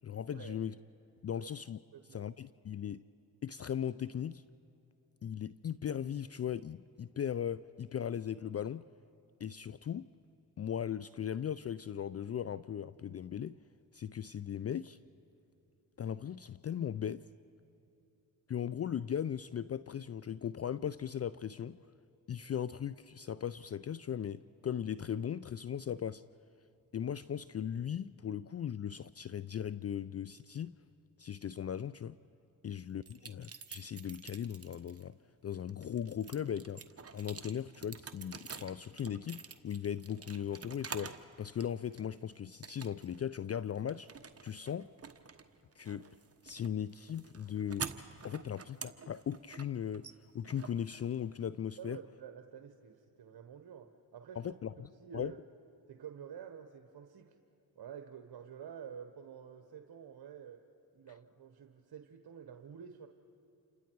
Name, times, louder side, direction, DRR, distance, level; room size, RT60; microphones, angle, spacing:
voice 1, 0.0-0.7 1.2-1.8 2.1-3.0 3.4-4.4 5.2-8.8 9.4-10.1 10.6-13.6 13.9-15.0 16.0-17.2 18.5-21.8 22.3-26.2 26.9-30.7 31.2-32.2 32.6-35.1 35.4-36.8 37.1-44.1 44.4-44.9 45.8-46.1 46.4-47.9 48.2-50.1 50.3-52.0 54.4-54.7 55.1-55.3, left 9 dB, 35° left, 0.4 m, -38 dB
voice 2, 1.9-2.3 51.8-54.6 55.0-55.4 55.9-57.3 57.7-60.6 60.9-63.1, right 8 dB, 60° right, 1.3 m, -49 dB
sound 1, 33.0-35.0 35.5-41.3 41.6-42.2 42.6-43.2 43.5-51.4, right 5 dB, 35° right, 1.3 m, -48 dB
28.5 x 26.5 x 4.7 m
supercardioid pair, 50°, 44 cm